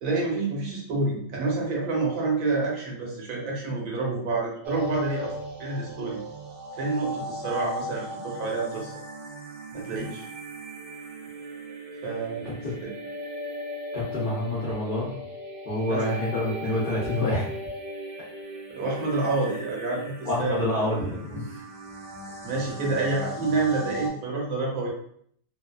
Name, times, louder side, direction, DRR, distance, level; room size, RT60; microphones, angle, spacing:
voice 1, 0.0-5.3 5.6-6.2 6.8-8.9 9.7-10.3 12.0-12.5 12.8-12.9 14.1-14.2 15.9-16.2 18.7-20.9 22.4-24.9, right 3 dB, 65° right, -2 dB, 1.2 m, -28 dB
sound 1, 4.6-24.1, equal, 90° right, 1.3 m, -38 dB
voice 2, 13.9-15.2 15.7-17.5 20.2-21.6, left 1 dB, 65° left, -8 dB, 0.5 m, -28 dB
2.9 x 2.3 x 2.2 m, 0.65 s
omnidirectional pair, 1.9 m